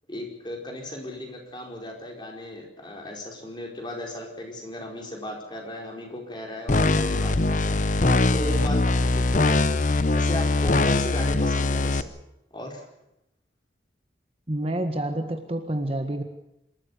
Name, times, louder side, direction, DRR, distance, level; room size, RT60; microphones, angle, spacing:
voice 1, 0.1-7.8 8.3-9.8 10.1-12.1 12.5-12.9, left 1 dB, 25° left, 1 dB, 4.9 m, -36 dB
sound 1, 6.7-12.0, left 2 dB, 45° left, 0.8 m, -22 dB
voice 2, 14.5-16.2, right 1 dB, 30° right, 6 dB, 1.6 m, -28 dB
27.0 x 14.0 x 8.3 m, 0.85 s
head